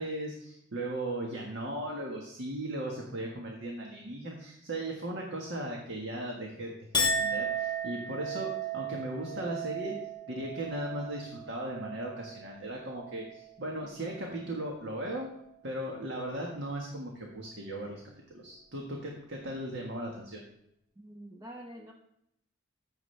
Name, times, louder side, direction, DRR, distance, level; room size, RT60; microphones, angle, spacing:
voice 1, 0.0-9.9 10.3-15.3 15.6-18.0 18.3-20.4, right 1 dB, 60° right, -1 dB, 1.6 m, -37 dB
Chink clink, 6.9-13.5 13.9-14.5, right 2 dB, 25° left, 0.9 m, -35 dB
voice 2, 21.0-21.9, right 1 dB, 20° right, 1 dB, 0.8 m, -46 dB
15.0 x 7.4 x 3.4 m, 0.77 s
head